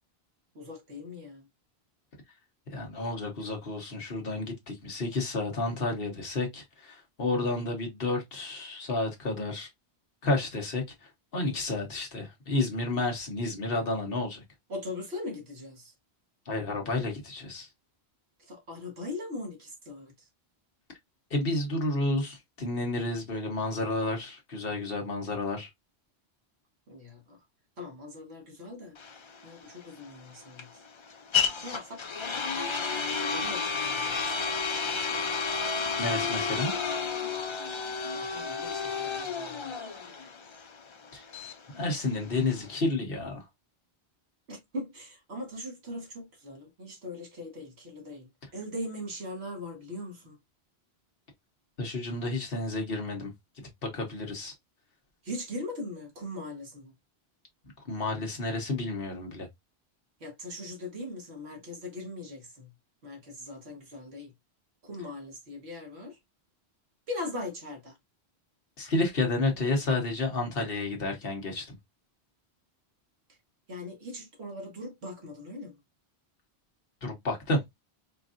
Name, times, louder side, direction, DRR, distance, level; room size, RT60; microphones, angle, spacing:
voice 1, 0.5-1.4 14.7-15.9 18.4-20.3 26.9-27.4 27.8-28.9 29.4-30.8 31.5-32.0 33.0-34.4 38.1-39.9 44.5-50.4 55.2-56.9 60.2-62.7 63.0-64.3 64.8-66.2 67.1-68.0 73.7-75.7, left 1 dB, 75° right, 1.7 m, -40 dB
voice 2, 2.7-9.7 10.2-14.4 16.5-17.7 21.3-25.7 36.0-36.7 41.1-41.2 41.7-43.4 51.8-53.3 53.8-54.5 57.9-59.5 68.8-71.8 77.0-77.6, left 2 dB, 60° left, 1.3 m, -31 dB
sound 1, 29.0-42.8, left 5 dB, 45° left, 0.4 m, -31 dB
4.6 x 2.6 x 2.5 m
omnidirectional pair, 1.1 m